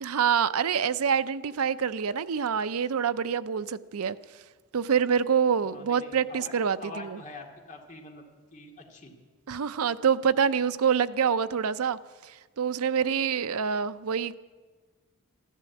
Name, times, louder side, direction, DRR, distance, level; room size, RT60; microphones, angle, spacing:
voice 1, 0.0-4.2 4.7-7.2 9.5-14.4, right 7 dB, 70° right, 13 dB, 0.5 m, -26 dB
voice 2, 5.6-6.5 6.8-9.1, left 2 dB, 35° left, 2 dB, 2.3 m, -45 dB
13.5 x 11.0 x 8.4 m, 1.4 s
head